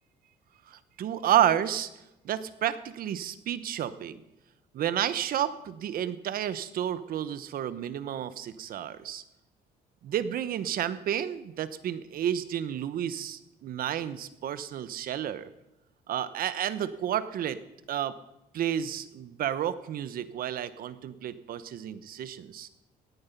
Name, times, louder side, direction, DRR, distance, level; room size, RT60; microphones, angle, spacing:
voice 1, 0.7-1.9 2.2-4.2 4.7-9.2 10.0-15.5 16.1-17.6 17.9-18.1 18.5-22.7, right 10 dB, 60° right, 14 dB, 1.0 m, -31 dB
17.5 x 10.0 x 5.4 m, 0.92 s
cardioid pair, 110°, 17 cm